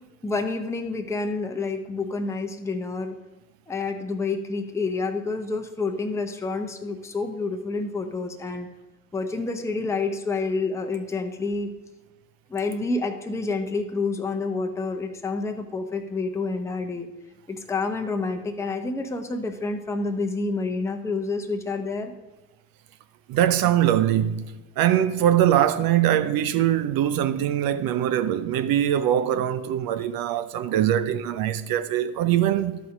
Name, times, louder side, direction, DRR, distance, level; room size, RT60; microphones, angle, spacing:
voice 1, 0.2-3.2 3.7-8.7 9.1-11.7 12.5-17.1 17.5-22.1, left 3 dB, 5° left, 0.8 m, -28 dB
voice 2, 23.3-32.8, right 11 dB, 50° right, 0.5 m, -22 dB
12.0 x 4.3 x 5.0 m
hypercardioid pair, 65°, 47 cm